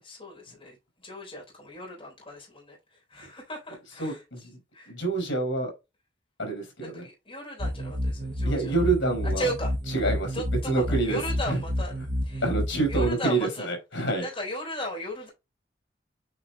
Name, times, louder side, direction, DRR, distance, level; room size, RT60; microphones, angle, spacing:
voice 1, 0.0-4.5 4.7-4.9 6.8-8.8 9.2-9.7 10.3-11.9 12.2-12.5 12.9-13.7 14.2-15.3, equal, 30° left, 3.9 m, -36 dB
voice 2, 4.0-4.6 4.9-5.7 6.4-7.0 8.4-9.5 9.9-11.2 11.5-11.6 12.4-14.3, right 3 dB, 80° left, 4.6 m, -27 dB
sound 1, 7.6-13.1, left 1 dB, 40° right, 0.9 m, -30 dB
8.8 x 5.0 x 2.3 m
head